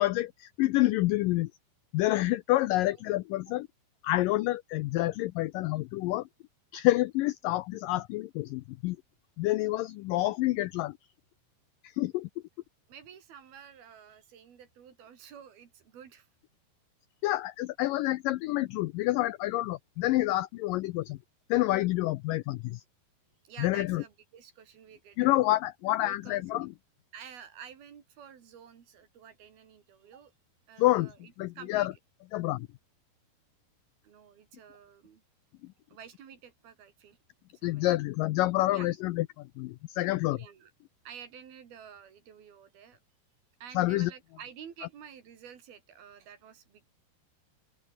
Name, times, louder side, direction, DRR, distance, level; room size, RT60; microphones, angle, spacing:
voice 1, 0.0-1.5 1.9-3.7 4.0-6.2 6.7-9.0 9.4-11.0 12.0-12.3 17.2-21.2 21.5-22.8 23.6-24.0 25.2-26.7 30.8-31.1 31.4-31.9 32.3-32.7 37.6-40.4 43.8-44.1, left 17 dB, 90° left, 1.9 m, -28 dB
voice 2, 12.9-16.3 23.4-25.3 26.0-26.7 27.1-30.3 30.7-32.0 34.0-35.2 35.9-37.2 37.5-37.9 38.7-38.9 40.3-40.7 41.0-43.0 43.6-46.9, right 8 dB, 70° right, 4.8 m, -50 dB
open air
omnidirectional pair, 4.6 m